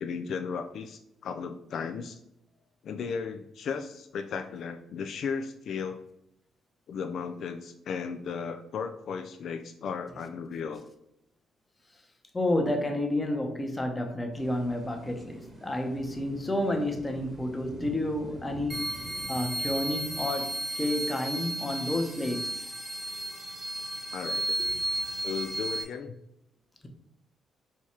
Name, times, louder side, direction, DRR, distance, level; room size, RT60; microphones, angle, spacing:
voice 1, 0.0-2.2 2.8-6.0 6.9-10.8 24.1-24.6 25.2-26.2, left 6 dB, 65° left, 0.3 m, -35 dB
voice 2, 12.3-19.0 19.3-22.7 24.6-24.7, left 1 dB, 20° left, 0.8 m, -30 dB
sound 1, 14.3-20.3, right 2 dB, 35° right, 1.0 m, -46 dB
sound 2, 18.7-25.8, right 1 dB, 10° right, 1.0 m, -34 dB
4.7 x 2.4 x 4.2 m
cardioid pair, 90°, 0 cm